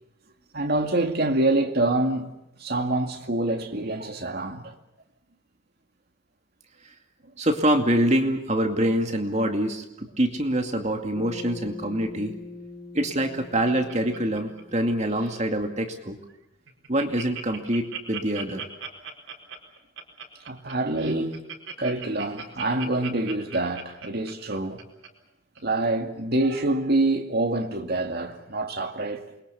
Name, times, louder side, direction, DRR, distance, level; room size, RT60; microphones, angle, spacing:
voice 1, 0.5-2.3 2.6-4.7 20.5-21.4 21.8-24.8 25.6-29.3, right 2 dB, 50° right, 2.3 m, -26 dB
voice 2, 7.4-12.3 12.9-16.2 16.9-18.6, right 1 dB, 35° right, 2.3 m, -25 dB
Bass guitar, 11.2-15.6, left 3 dB, 50° left, 3.4 m, -42 dB
Laughter, 13.0-14.8 15.1-15.4 15.9-16.0 16.3-16.4 16.7-25.1 25.6-25.7, right 6 dB, 80° right, 4.4 m, -38 dB
28.0 x 22.0 x 7.0 m
head